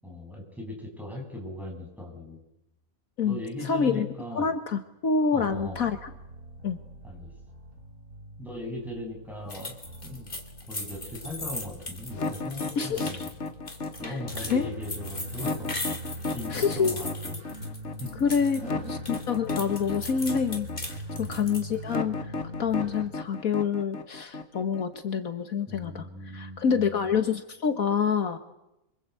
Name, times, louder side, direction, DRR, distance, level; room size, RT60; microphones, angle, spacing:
voice 1, 0.0-2.4 3.2-4.5 5.3-5.9 7.0-7.3 8.4-9.8 10.0-10.3 10.7-13.3 14.0-15.7 16.3-17.4 18.0-18.1 18.4-18.7 21.2-21.4 25.7-27.2, left 1 dB, ahead, 0 dB, 7.8 m, -39 dB
voice 2, 3.2-4.1 4.3-6.1 6.6-6.8 12.8-13.1 14.1-14.2 14.5-14.7 16.5-17.1 18.2-18.6 19.1-20.7 21.2-22.1 22.4-26.1 26.3-28.4, left 6 dB, 70° left, 8 dB, 1.8 m, -27 dB
sound 1, 5.4-23.1, equal, 85° right, 4.1 m, -42 dB
sound 2, 9.5-18.6 18.9-21.7, left 2 dB, 35° left, 3.0 m, -38 dB
sound 3, 12.1-25.0, left 3 dB, 50° left, 1.7 m, -34 dB
27.5 x 24.5 x 8.3 m, 0.88 s
omnidirectional pair, 1.6 m